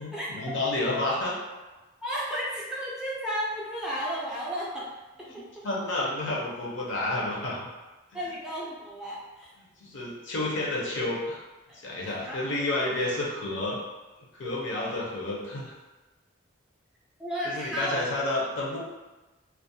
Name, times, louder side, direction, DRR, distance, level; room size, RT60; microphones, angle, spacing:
voice 1, 0.0-1.3 5.3-5.4 5.6-7.7 9.8-11.4 11.7-13.8 14.3-15.7 17.4-18.8, left 2 dB, 70° left, -4 dB, 0.6 m, -30 dB
voice 2, 2.0-4.8 8.1-9.5 11.7-12.5 17.2-18.0, equal, 5° right, -7 dB, 0.4 m, -33 dB
2.3 x 2.0 x 2.6 m, 1.1 s
head